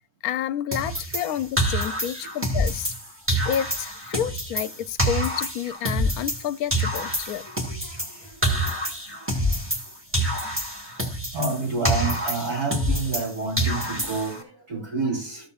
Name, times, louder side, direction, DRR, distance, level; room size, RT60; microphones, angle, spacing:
voice 1, 0.2-2.9 3.4-7.5, left 10 dB, 75° left, 1.0 m, -29 dB
sound 1, 0.7-3.0 3.3-6.4 6.7-9.9 10.1-13.3 13.6-14.4, equal, 10° right, 1.7 m, -26 dB
voice 2, 7.7-8.7 9.1-9.5 11.3-15.5, right 3 dB, 75° right, 5.1 m, -30 dB
13.5 x 7.0 x 2.4 m
omnidirectional pair, 1.6 m